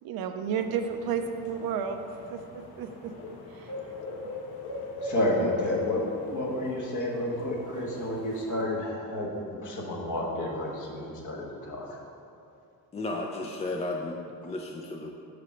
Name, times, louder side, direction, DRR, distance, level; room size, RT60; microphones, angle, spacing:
voice 1, 0.0-2.1 2.3-3.1 3.5-3.9 5.4-5.5, right 7 dB, 75° right, 7 dB, 0.6 m, -32 dB
sound 1, 0.6-8.5, left 2 dB, 80° left, 1.1 m, -40 dB
voice 2, 5.0-12.0, left 1 dB, 55° left, -2 dB, 1.4 m, -31 dB
voice 3, 12.9-15.1, left 2 dB, 20° left, 0 dB, 0.4 m, -34 dB
5.0 x 4.8 x 5.7 m, 2.6 s
cardioid pair, 95°, 37 cm